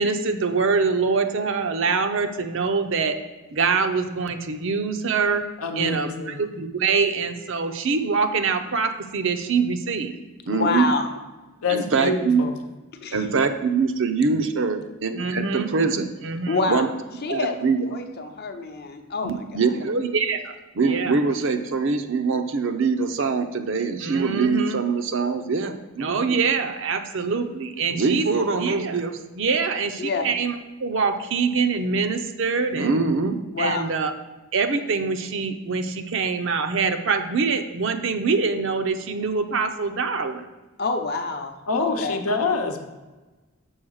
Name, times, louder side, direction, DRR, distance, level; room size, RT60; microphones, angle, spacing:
voice 1, 0.0-3.1 3.5-5.4 5.8-10.2 10.4-10.9 11.7-12.4 13.1-16.9 17.3-17.8 19.2-30.5 30.8-34.1 34.5-40.5, right 4 dB, 60° right, 7 dB, 0.6 m, -24 dB
voice 2, 5.6-6.4 11.6-12.5 41.7-42.8, left 3 dB, 85° left, 5 dB, 0.8 m, -26 dB
voice 3, 10.5-11.1 13.0-13.3 16.5-16.9 17.2-19.7 30.0-30.3 33.5-33.8 40.8-42.2, left 3 dB, 45° left, 5 dB, 0.7 m, -27 dB
6.3 x 3.9 x 6.3 m, 1.2 s
head